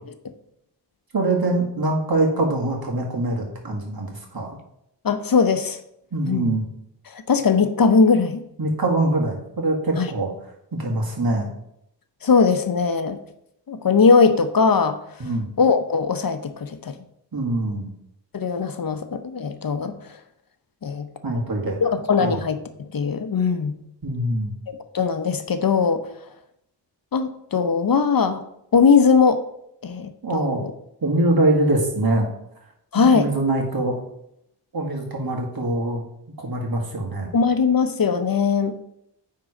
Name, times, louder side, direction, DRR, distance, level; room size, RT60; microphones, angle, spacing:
voice 1, 1.1-4.6 6.1-6.6 8.6-10.3 10.7-11.5 15.2-15.5 17.3-17.9 21.2-21.8 22.2-22.4 24.0-24.5 30.2-30.6 31.0-32.3 33.0-34.0 34.7-36.0 36.4-37.3, right 2 dB, 55° right, 0 dB, 1.9 m, -23 dB
voice 2, 5.0-5.8 6.3-6.5 7.1-8.4 10.0-10.1 12.2-13.2 13.7-15.0 15.6-16.9 18.3-19.9 20.8-21.1 21.8-23.8 24.7-26.0 27.1-28.4 28.7-29.4 29.8-30.7 32.9-33.3 37.3-38.7, left 5 dB, 50° left, 9 dB, 0.8 m, -20 dB
9.4 x 3.8 x 4.9 m, 0.76 s
wide cardioid pair, 70°, 43 cm